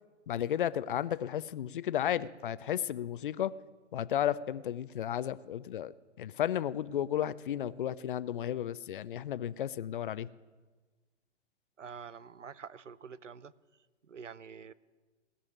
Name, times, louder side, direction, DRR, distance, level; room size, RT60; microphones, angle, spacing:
voice 1, 0.3-3.5 3.9-5.9 6.2-10.3, left 10 dB, 45° left, 17 dB, 0.5 m, -33 dB
voice 2, 11.8-13.5 14.0-14.7, right 6 dB, 85° right, 18 dB, 0.7 m, -47 dB
17.5 x 7.0 x 10.0 m, 1.3 s
figure-of-eight pair, 125°, 36 cm